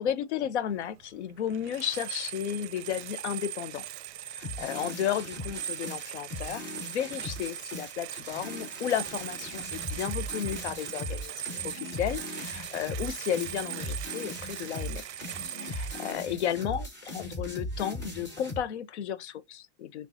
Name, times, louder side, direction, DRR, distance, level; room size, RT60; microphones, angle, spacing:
voice 1, 0.0-3.8 4.2-15.0 15.5-20.1, left 9 dB, 75° left, 0.7 m, -33 dB
sound 1, 0.8-0.9 1.3-16.1, right 10 dB, 70° right, 0.5 m, -39 dB
sound 2, 4.4-18.6, left 1 dB, 10° left, 1.9 m, -39 dB
6.1 x 2.4 x 2.6 m
supercardioid pair, 170°, 34 cm